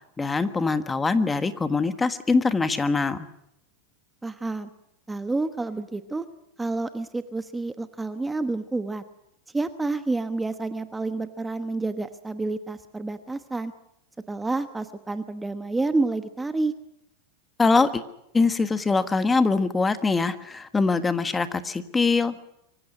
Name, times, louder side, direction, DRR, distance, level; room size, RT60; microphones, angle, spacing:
voice 1, 0.2-3.3 17.6-18.0 18.3-22.4, left 4 dB, 15° left, 11 dB, 1.4 m, -23 dB
voice 2, 4.2-4.7 5.1-6.3 6.6-9.0 9.5-13.7 14.3-16.7, right 3 dB, 10° right, 10 dB, 1.2 m, -29 dB
24.5 x 15.5 x 9.9 m, 0.79 s
hypercardioid pair, 120°, 0 cm